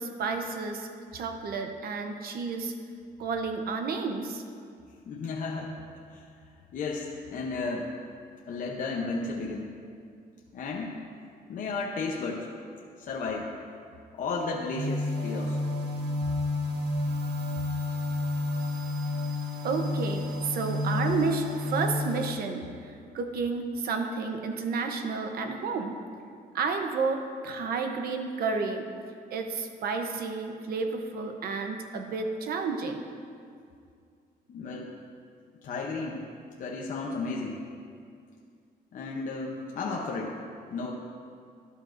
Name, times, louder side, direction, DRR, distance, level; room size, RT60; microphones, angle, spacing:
voice 1, 0.0-2.7 3.2-4.4 19.6-26.0 26.5-28.9 29.3-33.0, right 4 dB, 70° right, 5 dB, 0.8 m, -31 dB
voice 2, 5.1-5.8 6.1-6.3 6.7-7.9 8.5-9.7 10.5-10.9 11.5-12.5 13.0-13.5 14.1-15.6 34.5-34.9 35.6-36.3 36.6-37.6 38.9-40.4 40.7-40.9, left 3 dB, 55° left, -1 dB, 0.8 m, -33 dB
sound 1, 14.7-22.3, left 2 dB, 85° right, 1.4 m, -30 dB
12.5 x 11.5 x 2.6 m, 2.3 s
cardioid pair, 170°, 16 cm